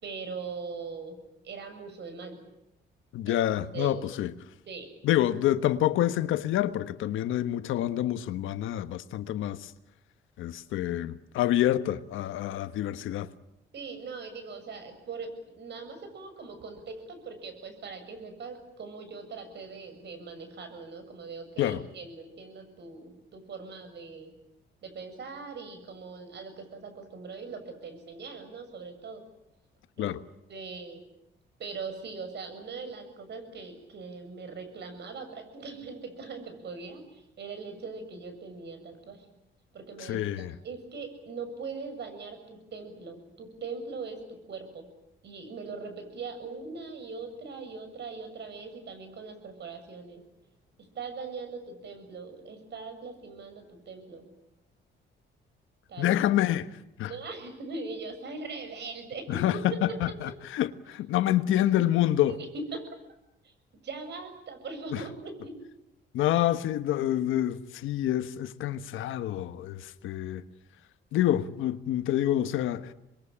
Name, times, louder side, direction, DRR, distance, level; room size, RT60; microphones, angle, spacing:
voice 1, 0.0-1.2 1.4-2.4 3.3-3.4 3.7-3.9 4.7-4.9 13.7-24.3 24.8-29.2 30.0-30.1 30.5-31.0 31.6-39.3 39.7-44.9 45.2-50.2 50.8-54.3 55.9-56.1 57.1-60.3 61.9-62.9 63.4-63.5 63.8-65.5, right 4 dB, 60° right, 7.1 m, -41 dB
voice 2, 3.1-4.3 5.0-9.7 10.4-13.3 21.6-21.8 30.0-30.2 40.0-40.6 56.0-56.7 57.0-57.1 59.3-62.4 64.9-65.0 66.1-70.4 71.1-72.9, left 12 dB, 85° left, 1.3 m, -27 dB
26.5 x 21.5 x 8.6 m
cardioid pair, 90°, 20 cm